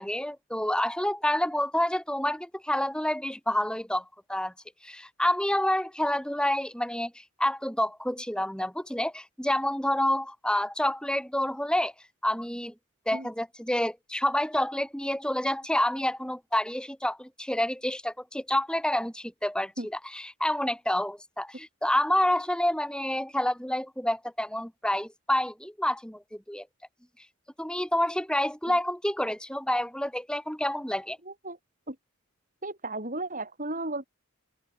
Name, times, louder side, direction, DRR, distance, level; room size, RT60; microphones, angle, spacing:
voice 1, 0.0-4.5 4.8-11.9 12.2-12.7 13.1-26.7 27.6-31.2, left 1 dB, 5° left, 7.6 m, -28 dB
voice 2, 32.6-34.1, right 2 dB, 40° right, 5.7 m, -34 dB
head